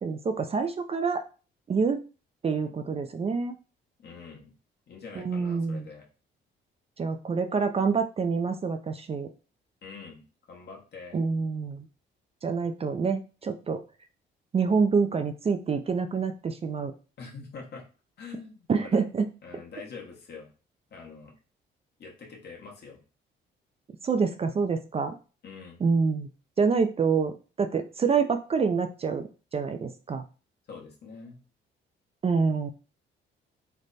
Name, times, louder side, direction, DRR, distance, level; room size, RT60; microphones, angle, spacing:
voice 1, 0.0-1.2 1.7-2.0 2.4-3.6 5.2-5.9 7.0-9.3 11.1-11.8 12.4-13.8 14.5-16.9 18.7-19.2 24.0-25.2 25.8-26.3 26.6-29.3 29.5-30.2 32.2-32.7, right 5 dB, 30° right, 7 dB, 0.4 m, -26 dB
voice 2, 4.0-4.5 4.9-6.0 9.8-10.2 10.5-11.2 17.2-17.8 18.2-19.0 19.4-20.5 20.9-21.3 22.0-23.0 25.4-25.8 30.7-31.4, left 5 dB, 55° left, 0 dB, 1.2 m, -44 dB
3.2 x 2.1 x 4.0 m, 0.34 s
cardioid pair, 90°, 20 cm